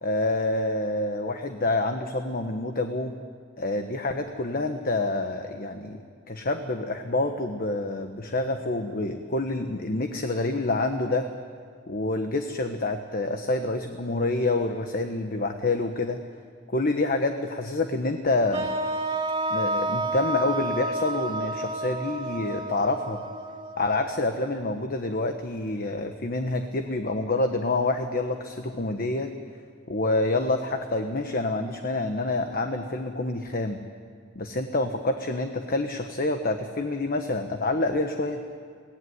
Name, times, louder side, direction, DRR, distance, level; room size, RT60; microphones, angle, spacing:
voice 1, 0.0-3.1 3.6-11.3 11.9-16.2 16.7-18.7 19.5-23.2 23.8-29.3 29.9-33.8 34.3-38.4, left 2 dB, 45° left, 6 dB, 1.3 m, -27 dB
sound 1, 18.5-24.6, right 2 dB, 30° right, 2.5 m, -30 dB
23.5 x 18.5 x 9.7 m, 2.1 s
head